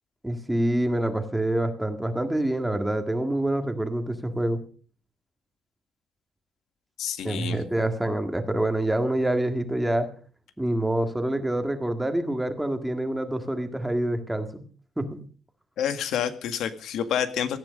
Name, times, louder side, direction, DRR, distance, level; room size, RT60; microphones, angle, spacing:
voice 1, 0.2-4.6 7.2-10.1 10.6-14.6 15.0-15.2, right 1 dB, 5° right, 6 dB, 1.9 m, -26 dB
voice 2, 7.0-7.6 15.8-17.6, left 9 dB, 90° left, 9 dB, 1.9 m, -28 dB
18.0 x 14.0 x 5.3 m, 0.42 s
cardioid pair, 170°, 0 cm